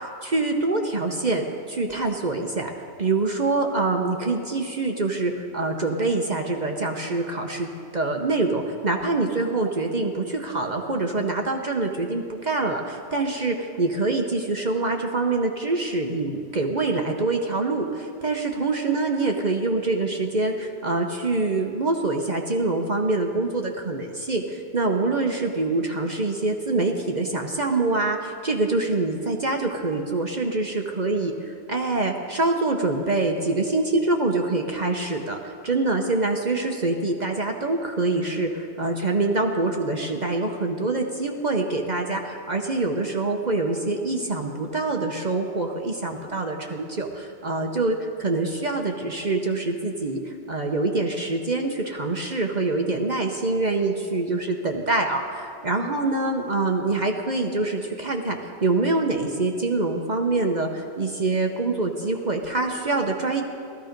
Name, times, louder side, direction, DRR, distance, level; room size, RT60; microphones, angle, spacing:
voice 1, 0.0-31.3 31.7-63.4, right 3 dB, 40° right, 3 dB, 0.9 m, -25 dB
16.0 x 14.0 x 5.2 m, 2.5 s
omnidirectional pair, 1.3 m